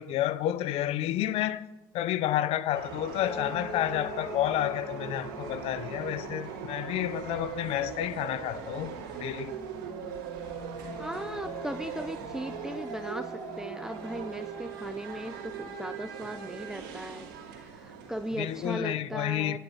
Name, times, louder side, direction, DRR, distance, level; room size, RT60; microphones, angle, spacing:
voice 1, 0.0-1.6 1.9-9.5 18.4-19.6, left 13 dB, 65° left, 0.6 m, -30 dB
sound 1, 2.7-18.8, right 8 dB, 85° right, 2.5 m, -40 dB
sound 2, 3.2-7.5 9.7-16.1 16.5-16.6, left 3 dB, 25° left, 2.0 m, -46 dB
voice 2, 11.0-19.6, right 1 dB, 5° right, 0.7 m, -38 dB
11.0 x 6.7 x 7.7 m
hypercardioid pair, 70°, 11 cm